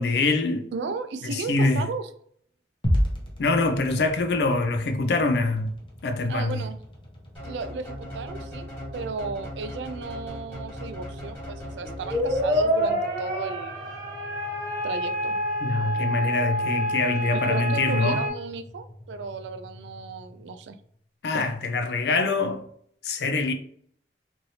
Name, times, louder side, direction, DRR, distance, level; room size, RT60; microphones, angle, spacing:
voice 1, 0.0-0.7 1.2-1.9 3.4-5.7 6.0-6.6 15.6-18.2 21.2-22.6 23.0-23.5, left 3 dB, 65° left, 0.4 m, -24 dB
voice 2, 0.7-2.1 6.3-6.8 7.4-8.7 8.9-13.9 14.8-15.4 17.3-20.8, right 4 dB, 80° right, 0.3 m, -34 dB
sound 1, 2.8-21.1, equal, 30° left, 0.7 m, -37 dB
sound 2, 7.3-13.1, equal, 15° left, 1.5 m, -38 dB
sound 3, 11.8-18.3, equal, 45° right, 1.0 m, -27 dB
3.1 x 2.6 x 2.8 m
head